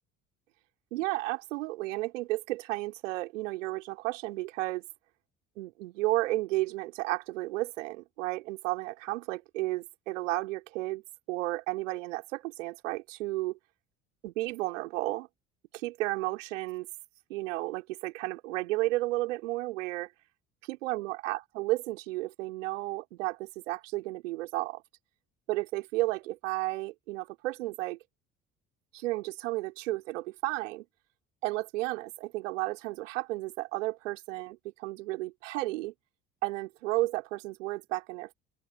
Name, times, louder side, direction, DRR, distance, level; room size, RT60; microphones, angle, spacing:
voice 1, 0.9-4.8 5.6-11.0 11.3-13.6 14.2-15.3 15.7-16.9 17.3-20.1 20.7-24.8 25.5-28.0 28.9-30.9 31.4-35.9 36.4-38.3, right 19 dB, 75° right, 3.9 m, -33 dB
open air
figure-of-eight pair, 55°, 38 cm